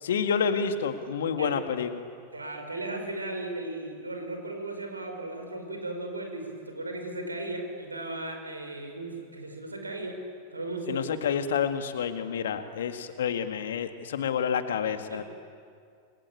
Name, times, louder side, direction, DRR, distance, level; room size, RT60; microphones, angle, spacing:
voice 1, 0.0-2.1 10.9-15.2, left 7 dB, 60° left, 8 dB, 2.0 m, -29 dB
voice 2, 2.3-10.2 10.5-11.2 15.1-15.2, right 2 dB, 80° right, 4 dB, 5.4 m, -36 dB
29.0 x 23.5 x 8.7 m, 2.2 s
figure-of-eight pair, 90°, 0 cm